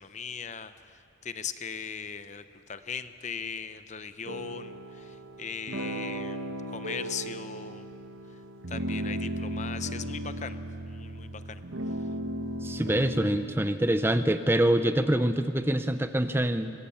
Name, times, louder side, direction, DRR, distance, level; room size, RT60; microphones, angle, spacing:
voice 1, 0.0-7.8 8.7-10.6 10.9-11.6, left 6 dB, 35° left, 11 dB, 0.8 m, -39 dB
sound 1, 4.3-13.5, equal, 85° right, 1.3 m, -36 dB
voice 2, 12.6-16.7, right 1 dB, 10° right, 10 dB, 0.7 m, -25 dB
24.5 x 21.0 x 8.6 m, 2.7 s
head